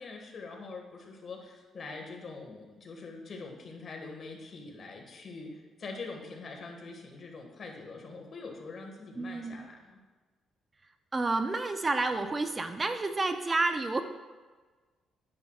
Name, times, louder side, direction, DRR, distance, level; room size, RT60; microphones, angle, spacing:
voice 1, 0.0-10.0, left 3 dB, 50° left, 2 dB, 1.8 m, -44 dB
voice 2, 9.2-9.7 11.1-14.0, right 3 dB, 25° right, 8 dB, 0.6 m, -30 dB
10.5 x 9.6 x 2.4 m, 1.4 s
cardioid pair, 90°, 0 cm